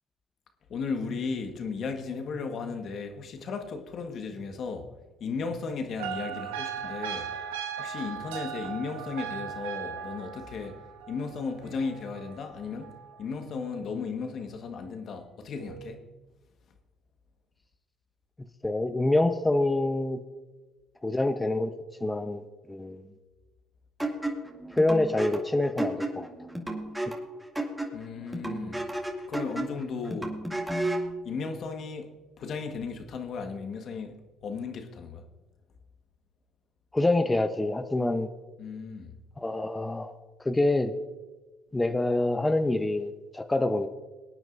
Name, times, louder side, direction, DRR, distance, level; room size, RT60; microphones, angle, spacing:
voice 1, 0.7-4.9 5.2-7.3 7.8-12.9 13.2-16.1 27.9-28.8 29.3-30.4 31.2-35.2 38.6-39.1, left 5 dB, 55° left, 1.5 m, -35 dB
sound 1, 6.0-13.2 15.6-15.9, right 7 dB, 90° right, 1.2 m, -38 dB
voice 2, 18.6-20.2 21.0-21.7 22.0-23.1 24.8-26.3 36.9-38.3 39.4-40.1 40.4-40.9 41.7-43.9, left 2 dB, 15° left, 0.8 m, -26 dB
sound 2, 24.0-31.1, right 1 dB, 5° right, 2.2 m, -33 dB
23.5 x 9.2 x 2.6 m
supercardioid pair, 70°, 0 cm